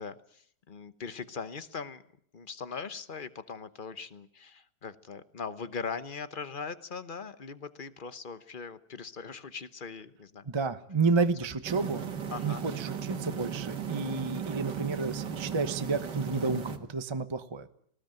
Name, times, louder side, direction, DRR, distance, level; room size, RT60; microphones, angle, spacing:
voice 1, 0.0-2.0 2.3-10.5 12.3-12.7, left 5 dB, 35° left, 13 dB, 0.9 m, -40 dB
voice 2, 10.5-12.1 12.4-17.7, right 4 dB, 20° right, 10 dB, 0.8 m, -30 dB
sound 1, 11.6-16.8, right 7 dB, 75° right, 2.3 m, -36 dB
19.0 x 19.0 x 9.1 m, 0.65 s
omnidirectional pair, 1.9 m